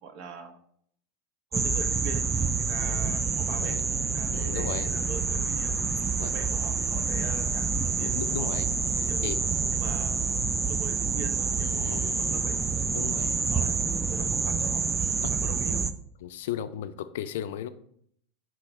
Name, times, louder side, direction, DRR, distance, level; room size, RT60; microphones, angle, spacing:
voice 1, 0.0-0.6 1.5-3.8 4.1-5.7 6.2-8.5 9.1-9.3 9.7-10.3 10.7-12.5 13.2-13.7 14.1-14.8 15.4-15.8, right 5 dB, 60° right, 7 dB, 0.7 m, -42 dB
sound 1, 1.5-15.9, right 5 dB, 25° right, 0.4 m, -27 dB
voice 2, 4.3-4.9 6.2-6.4 8.0-8.7 9.0-9.7 11.6-12.4 12.9-13.3 15.2-15.3 16.2-17.7, left 10 dB, 75° left, 12 dB, 0.3 m, -36 dB
4.9 x 3.0 x 3.1 m, 0.65 s
hypercardioid pair, 90°, 0 cm